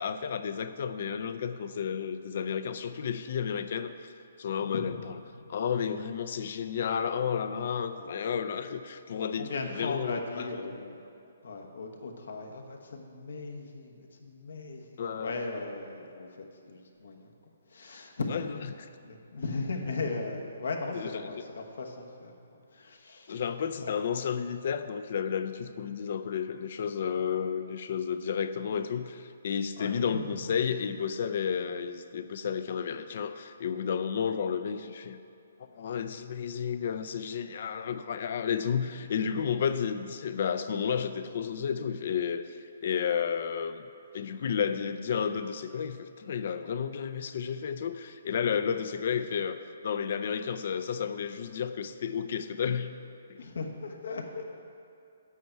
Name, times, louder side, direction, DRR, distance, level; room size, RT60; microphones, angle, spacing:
voice 1, 0.0-4.1 4.4-5.1 5.5-10.5 15.0-15.3 18.3-18.4 20.9-21.1 23.3-35.2 35.8-42.6 42.8-43.9 44.1-52.9 53.3-53.4, left 7 dB, 50° left, 10 dB, 0.4 m, -32 dB
voice 2, 4.6-5.0 5.4-5.6 7.9-8.3 9.3-17.3 17.7-18.5 19.0-23.4 23.8-23.9 29.8-30.6 53.4-54.4, left 3 dB, 80° left, 2 dB, 1.1 m, -38 dB
8.8 x 8.2 x 4.5 m, 2.5 s
hypercardioid pair, 160°, 0 cm